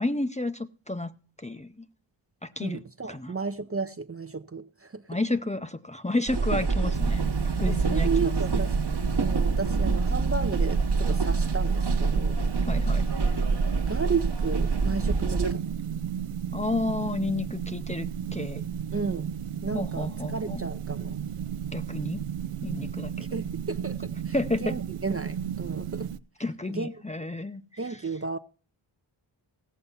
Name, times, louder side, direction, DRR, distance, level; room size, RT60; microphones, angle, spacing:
voice 1, 0.0-1.9 2.4-2.8 3.1-3.3 5.1-8.4 12.7-13.1 16.5-18.6 19.7-20.7 21.7-22.3 22.6-23.3 24.3-24.8 26.4-27.6 27.9-28.0, left 2 dB, 15° left, 0.6 m, -31 dB
voice 2, 2.6-5.0 7.7-8.8 9.2-12.4 13.8-15.8 18.9-19.3 19.6-21.2 23.3-24.3 24.6-26.1 26.7-26.9 27.8-28.4, right 5 dB, 30° right, 0.6 m, -33 dB
sound 1, 6.3-15.5, right 4 dB, 55° right, 1.3 m, -26 dB
sound 2, 6.9-26.2, right 8 dB, 85° right, 0.6 m, -33 dB
16.0 x 6.9 x 5.5 m
wide cardioid pair, 55°, 49 cm